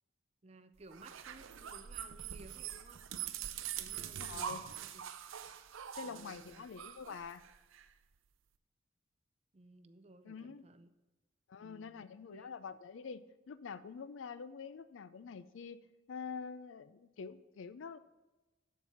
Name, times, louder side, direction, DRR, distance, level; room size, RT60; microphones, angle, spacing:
voice 1, 0.4-3.0 3.6-5.0 6.0-6.7 9.5-10.9 11.6-12.5, right 2 dB, 30° right, 10 dB, 0.5 m, -58 dB
sound 1, 0.9-7.9, right 9 dB, 85° right, 0.5 m, -44 dB
voice 2, 4.2-4.6 6.0-7.4 10.2-10.7 11.5-15.8 16.1-18.0, left 5 dB, 75° left, 15 dB, 0.4 m, -46 dB
13.0 x 4.7 x 5.5 m, 1.1 s
head